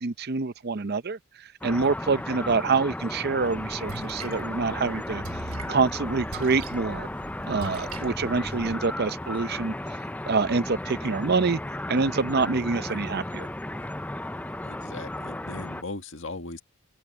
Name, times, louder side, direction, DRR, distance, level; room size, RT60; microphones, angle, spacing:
voice 1, 0.0-5.4 5.7-7.1 7.5-9.7 10.2-11.6 11.9-13.5, right 4 dB, 50° right, 0.6 m, -26 dB
sound 1, 1.6-15.8, left 1 dB, 5° left, 0.5 m, -35 dB
Splash splatter, 3.4-8.7, right 3 dB, 85° right, 1.2 m, -42 dB
voice 2, 14.6-16.6, left 3 dB, 60° left, 1.8 m, -38 dB
open air
head